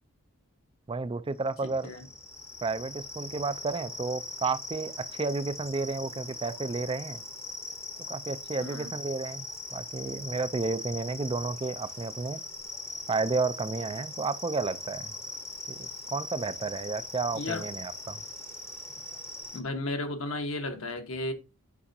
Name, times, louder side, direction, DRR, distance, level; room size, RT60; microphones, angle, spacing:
voice 1, 0.9-1.9 2.6-7.2 8.1-9.5 9.7-12.4 13.1-15.1 15.7-18.2, right 3 dB, 25° right, 0.4 m, -32 dB
sound 1, 1.5-19.6, left 2 dB, 10° left, 0.8 m, -41 dB
voice 2, 1.6-2.1 8.6-8.9 17.3-17.6 19.5-21.3, left 2 dB, 65° left, 1.2 m, -34 dB
8.5 x 5.5 x 2.7 m
head